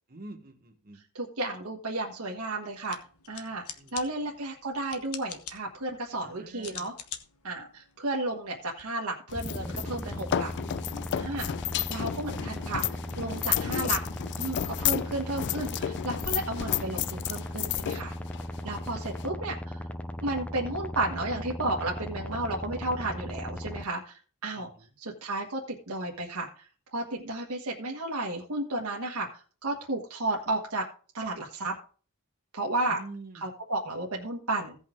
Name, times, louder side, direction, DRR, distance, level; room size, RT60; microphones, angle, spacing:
voice 1, 0.1-1.0 3.8-3.9 6.2-6.9 18.9-19.0 24.5-24.8 32.9-33.5, right 2 dB, 45° right, 5 dB, 1.6 m, -46 dB
voice 2, 1.1-3.0 3.3-3.6 3.9-6.9 7.4-10.5 11.1-11.5 11.9-12.8 13.2-14.0 14.4-18.1 18.6-19.8 20.2-24.7 25.0-25.6 25.9-26.5 26.9-29.3 29.6-30.8 31.1-31.7 32.5-33.0 33.3-34.8, right 2 dB, 70° right, -1 dB, 1.5 m, -33 dB
sound 1, 2.7-8.8, left 9 dB, 90° left, 1.2 m, -46 dB
sound 2, 9.3-19.3, left 11 dB, 50° left, 0.3 m, -32 dB
sound 3, 9.3-23.8, left 1 dB, 5° left, 0.6 m, -37 dB
16.5 x 5.6 x 3.8 m, 0.40 s
head